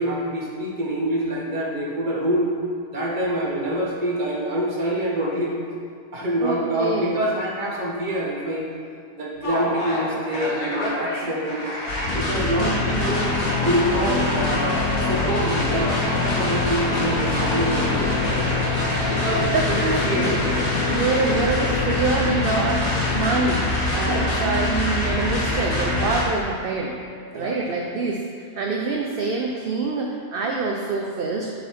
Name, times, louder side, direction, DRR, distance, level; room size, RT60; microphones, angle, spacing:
voice 1, 0.0-2.5 2.9-5.5 6.1-8.7 9.2-11.6 12.1-13.2 13.6-14.8 15.1-18.5 19.1-20.3 24.0-24.2 27.3-27.6, right 1 dB, 35° right, -4 dB, 1.3 m, -26 dB
voice 2, 6.4-7.3 12.3-13.3 19.4-20.4 20.9-23.7 23.9-27.0 27.3-31.5, right 4 dB, 60° right, 0 dB, 0.6 m, -26 dB
sound 1, 9.4-26.2, left 2 dB, 85° left, 1.8 m, -24 dB
8.5 x 4.1 x 4.5 m, 2.2 s
omnidirectional pair, 1.5 m